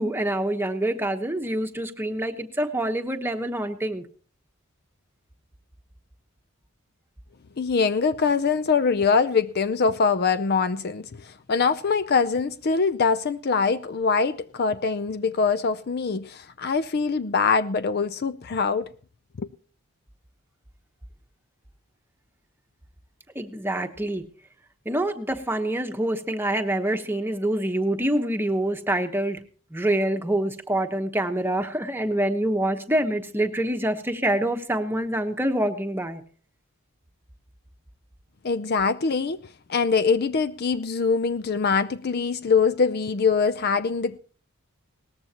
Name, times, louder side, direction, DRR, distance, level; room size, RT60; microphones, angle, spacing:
voice 1, 0.0-4.0 23.3-24.2 24.8-29.4 29.7-36.2, right 1 dB, 10° right, 1.1 m, -26 dB
voice 2, 7.6-18.9 19.4-19.5 38.4-39.4 39.7-44.2, left 5 dB, 45° left, 0.5 m, -23 dB
18.5 x 14.0 x 2.9 m
head